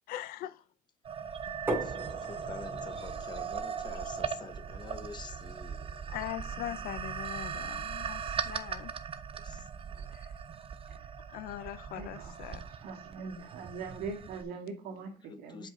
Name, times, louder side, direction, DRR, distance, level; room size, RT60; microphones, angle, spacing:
voice 1, 0.1-0.6 6.1-8.9 10.1-10.3 11.3-12.6, left 13 dB, 75° left, 0.6 m, -41 dB
sound 1, 1.0-14.4, right 7 dB, 40° right, 0.7 m, -39 dB
sound 2, 1.7-7.3, right 1 dB, 15° right, 2.5 m, -42 dB
voice 2, 1.8-5.9 9.4-10.1 15.2-15.7, left 4 dB, 30° left, 0.9 m, -47 dB
voice 3, 11.9-15.7, right 4 dB, 80° right, 1.8 m, -42 dB
7.9 x 4.6 x 3.7 m
cardioid pair, 120°, 15 cm